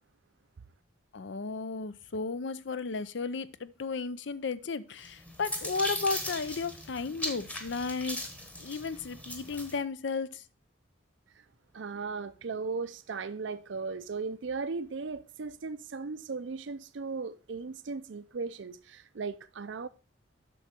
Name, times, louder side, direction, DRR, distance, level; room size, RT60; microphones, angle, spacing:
voice 1, 1.1-8.3 8.6-10.4, left 4 dB, 65° left, 0.5 m, -34 dB
sound 1, 5.0-9.8, left 1 dB, 5° left, 1.0 m, -38 dB
voice 2, 11.7-19.9, right 4 dB, 70° right, 0.5 m, -37 dB
7.8 x 6.0 x 4.3 m
head